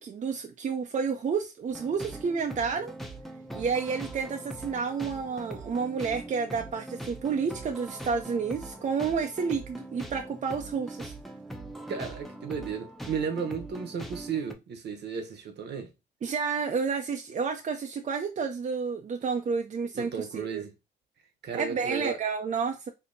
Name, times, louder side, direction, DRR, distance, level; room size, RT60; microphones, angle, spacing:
voice 1, 0.0-2.9 3.5-11.1 16.2-20.6 21.5-22.9, right 5 dB, 40° right, 0.5 m, -30 dB
sound 1, 1.7-14.5, right 1 dB, ahead, 0.7 m, -42 dB
voice 2, 11.9-15.9 19.9-20.7 21.4-22.2, right 6 dB, 60° right, 0.9 m, -34 dB
4.4 x 2.7 x 2.6 m
cardioid pair, 90°, 20 cm